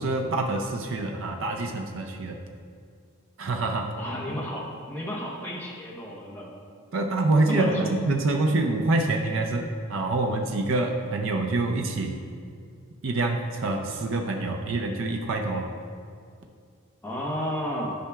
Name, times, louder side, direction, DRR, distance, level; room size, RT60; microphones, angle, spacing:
voice 1, 0.0-2.4 3.4-3.9 6.9-12.1 13.0-15.6, right 2 dB, 60° right, 2 dB, 0.5 m, -26 dB
voice 2, 4.0-6.5 7.5-7.9 17.0-17.9, equal, 10° left, -5 dB, 1.0 m, -32 dB
10.5 x 5.6 x 2.3 m, 2.3 s
head